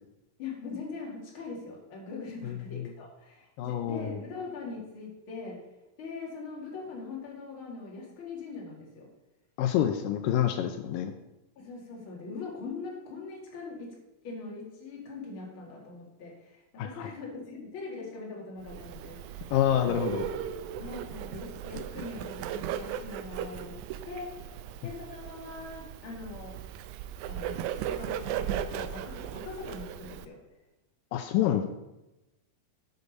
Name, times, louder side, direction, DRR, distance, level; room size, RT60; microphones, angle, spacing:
voice 1, 0.4-5.6 6.0-9.1 11.6-13.9 14.2-19.5 19.8-20.0 20.8-23.8 24.0-24.5 24.8-26.6 27.3-30.4 31.4-31.6, left 4 dB, 40° left, -2 dB, 2.6 m, -41 dB
voice 2, 3.6-4.2 9.6-11.1 16.8-17.1 19.5-20.2 31.1-31.7, left 10 dB, 85° left, 7 dB, 2.2 m, -27 dB
Bird, 18.6-30.3, right 10 dB, 80° right, 1.7 m, -37 dB
8.1 x 6.9 x 5.3 m, 0.98 s
omnidirectional pair, 3.9 m